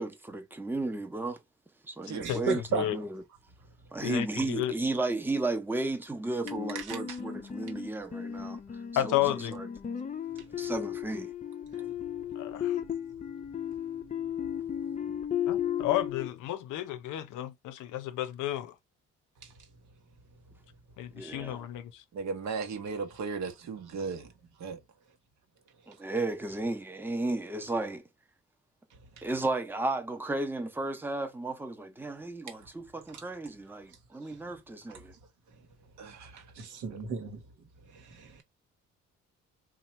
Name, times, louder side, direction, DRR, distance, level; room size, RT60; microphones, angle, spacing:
voice 1, 0.0-1.4 1.8-3.2 3.9-8.6 8.9-9.7 10.6-11.3 21.2-21.7 25.9-28.0 29.2-35.1, right 2 dB, 5° right, 0.7 m, -34 dB
voice 2, 2.2-2.9 6.7-7.2 11.7-11.9 19.4-19.5 29.2-29.3 34.2-34.4 36.4-37.4 37.9-38.4, right 6 dB, 85° right, 1.2 m, -35 dB
voice 3, 4.0-4.7 9.0-9.5 12.4-12.8 15.5-18.7 21.0-22.0, left 13 dB, 85° left, 0.6 m, -32 dB
sound 1, 6.4-16.3, left 9 dB, 25° left, 0.4 m, -35 dB
voice 4, 22.1-24.3 24.6-24.8 36.0-37.0, right 4 dB, 65° right, 1.0 m, -37 dB
2.9 x 2.4 x 4.2 m
cardioid pair, 90°, 30 cm